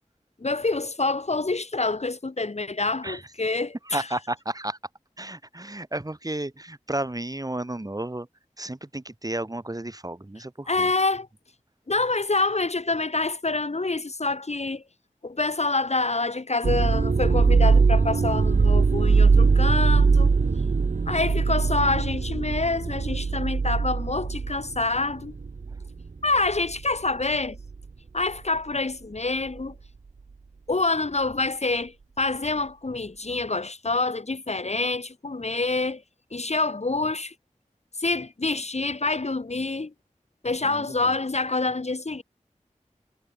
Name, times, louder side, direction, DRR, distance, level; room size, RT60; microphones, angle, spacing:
voice 1, 0.4-4.1 10.7-11.3 11.9-14.8 15.2-20.3 21.1-25.4 26.2-27.6 28.1-29.7 30.7-36.0 36.3-37.3 38.0-39.9 40.4-42.2, left 3 dB, 55° left, 2.0 m, -26 dB
voice 2, 3.9-4.8 5.2-8.3 8.6-10.9 40.6-41.1, right 1 dB, 30° right, 2.8 m, -32 dB
sound 1, 16.6-26.1 26.5-26.9 27.6-27.8, right 4 dB, 70° right, 0.8 m, -21 dB
wide cardioid pair, 65°, 13 cm